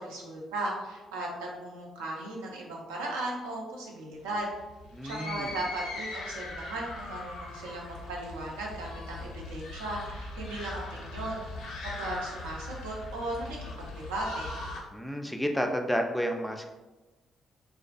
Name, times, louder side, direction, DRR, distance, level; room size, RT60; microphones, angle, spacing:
voice 1, 0.0-4.5 5.0-14.5, right 2 dB, 80° right, -2 dB, 0.4 m, -37 dB
sound 1, 4.2-14.8, left 2 dB, 70° left, 0.4 m, -40 dB
voice 2, 4.9-5.6 14.9-16.7, equal, 5° left, 3 dB, 0.3 m, -31 dB
2.4 x 2.3 x 2.3 m, 1.1 s
hypercardioid pair, 45°, 0 cm